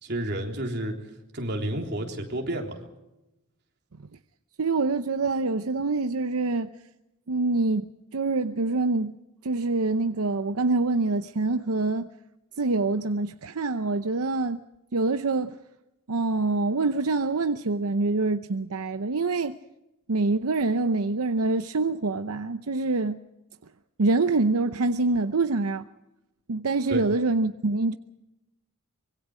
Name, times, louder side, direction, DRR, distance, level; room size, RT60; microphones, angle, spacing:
voice 1, 0.0-1.0 1.3-2.8 26.9-27.0, right 1 dB, 50° right, 3.6 m, -30 dB
voice 2, 4.6-6.7 7.3-9.2 9.4-12.1 12.6-14.6 14.9-15.6 16.1-19.6 20.1-23.2 24.0-25.8 26.5-28.0, right 3 dB, 80° right, 0.7 m, -25 dB
25.0 x 22.5 x 5.0 m
head